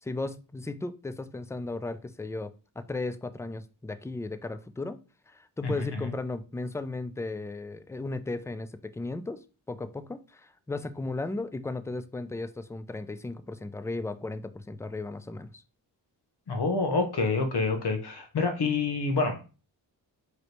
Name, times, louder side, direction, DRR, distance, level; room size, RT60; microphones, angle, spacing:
voice 1, 0.0-5.0 5.3-15.6, left 2 dB, 5° left, 0.3 m, -36 dB
voice 2, 5.6-6.0 16.5-19.4, left 3 dB, 65° left, 1.1 m, -27 dB
4.8 x 3.2 x 3.0 m
cardioid pair, 50°, 44 cm